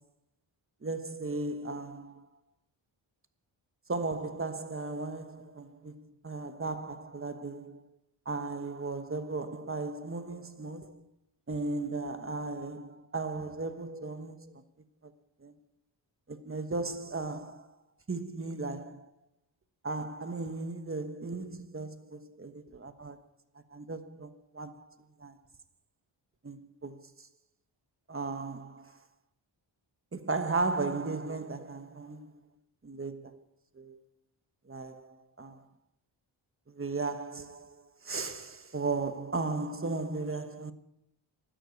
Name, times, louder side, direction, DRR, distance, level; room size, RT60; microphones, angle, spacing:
voice 1, 0.8-2.3 3.9-7.8 8.2-11.1 11.5-14.6 15.4-15.5 16.3-17.7 18.1-19.1 19.8-23.2 23.7-25.4 26.4-27.1 28.1-29.0 30.1-32.3 32.8-33.4 33.7-34.0 34.7-35.6 36.7-37.8 38.0-40.7, right 3 dB, 25° right, 1.2 m, -36 dB
12.5 x 10.0 x 8.3 m
wide cardioid pair, 95°, 48 cm